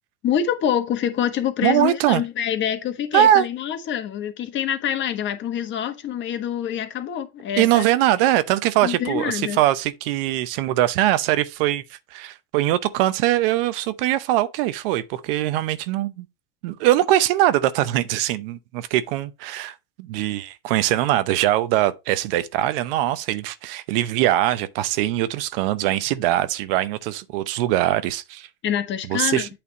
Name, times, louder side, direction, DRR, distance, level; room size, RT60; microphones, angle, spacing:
voice 1, 0.2-7.8 8.8-9.6 28.6-29.5, left 9 dB, 40° left, 1.2 m, -26 dB
voice 2, 1.6-2.2 3.1-3.4 7.6-16.3 16.6-28.5 29.1-29.5, right 14 dB, 65° right, 0.8 m, -22 dB
8.6 x 3.5 x 4.1 m
hypercardioid pair, 105°, 30 cm